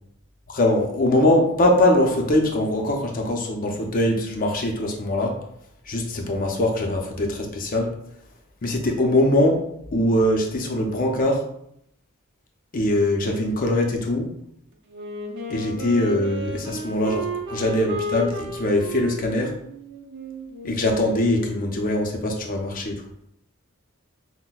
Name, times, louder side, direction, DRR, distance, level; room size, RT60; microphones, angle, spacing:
voice 1, 0.5-5.4 5.9-7.9 8.6-9.6 9.9-11.4 12.7-14.3 15.5-19.5 20.6-23.0, left 1 dB, 40° left, 2 dB, 0.5 m, -22 dB
Wind instrument woodwind instrument, 14.9-21.6, right 1 dB, 55° right, 0.6 m, -33 dB
5.7 x 2.1 x 2.3 m, 0.74 s
head